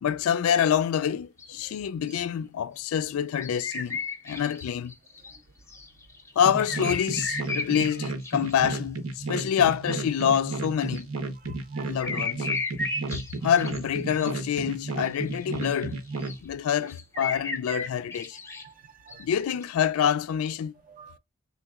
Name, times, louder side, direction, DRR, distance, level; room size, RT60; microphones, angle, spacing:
voice 1, 0.0-4.0 4.2-4.9 6.4-11.1 11.9-12.5 13.4-16.0 16.4-18.4 19.2-20.7, left 8 dB, 75° left, 0.3 m, -26 dB
sound 1, 1.4-1.5 2.1-2.2 2.8-3.0 3.4-5.4 5.7-8.8 10.9-11.0 12.0-13.8 14.1-14.3 15.0-15.1 15.4-15.7 16.2-16.4 16.9-18.6 19.1-19.2 19.5-19.6, left 3 dB, 15° left, 0.6 m, -34 dB
sound 2, 6.4-16.4, right 3 dB, 80° right, 0.7 m, -33 dB
voice 2, 11.5-12.0 17.3-17.4 18.6-19.3 20.8-21.2, right 7 dB, 40° right, 0.5 m, -50 dB
3.4 x 2.8 x 2.3 m
head